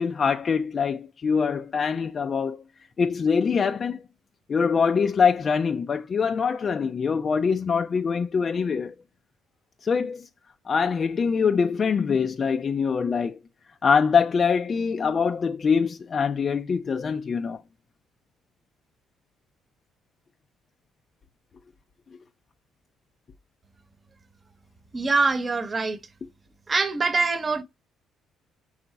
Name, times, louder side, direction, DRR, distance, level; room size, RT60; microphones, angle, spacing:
voice 1, 0.0-2.6 3.0-4.0 4.5-8.9 9.8-10.3 10.7-13.4 13.8-17.6, left 6 dB, 45° left, 0.5 m, -24 dB
voice 2, 24.9-26.0 26.7-27.6, right 3 dB, 30° right, 1.0 m, -24 dB
5.6 x 4.0 x 5.7 m
cardioid pair, 80°, 0 cm